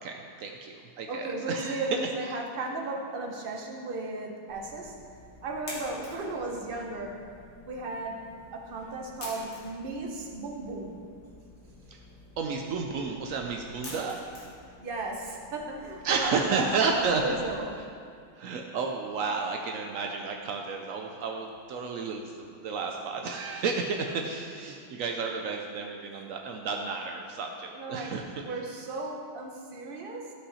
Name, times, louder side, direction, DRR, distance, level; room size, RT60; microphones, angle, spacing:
voice 1, 0.0-2.3 11.9-12.0 12.4-14.2 16.0-17.4 18.4-28.6, right 4 dB, 85° right, 2 dB, 0.7 m, -32 dB
voice 2, 1.1-5.0 5.4-7.2 7.6-8.2 8.5-11.0 14.8-17.7 24.6-24.8 27.7-28.1 28.4-30.3, right 2 dB, 40° right, 0 dB, 0.8 m, -35 dB
sound 1, 4.5-17.6, left 2 dB, 90° left, 2.5 m, -49 dB
13.0 x 5.5 x 4.2 m, 2.2 s
omnidirectional pair, 2.1 m